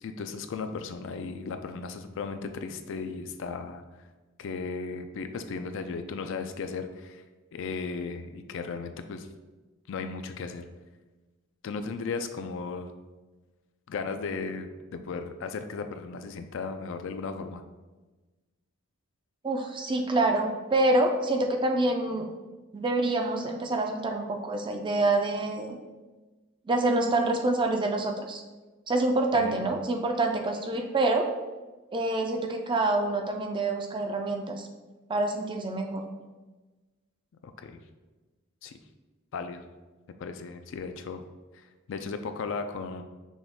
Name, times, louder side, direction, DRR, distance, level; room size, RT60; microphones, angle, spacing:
voice 1, 0.0-3.8 4.4-7.2 7.5-9.3 9.9-10.6 11.6-12.9 13.9-17.6 29.3-29.6 37.4-37.7 38.6-38.7 39.3-39.6 40.2-41.2 41.9-43.0, left 4 dB, 60° left, 8 dB, 0.3 m, -35 dB
voice 2, 19.4-22.3 22.7-25.8 26.7-28.4 28.9-31.3 31.9-34.7 35.1-36.0, right 2 dB, 20° right, 3 dB, 0.4 m, -26 dB
6.1 x 2.3 x 3.5 m, 1.2 s
head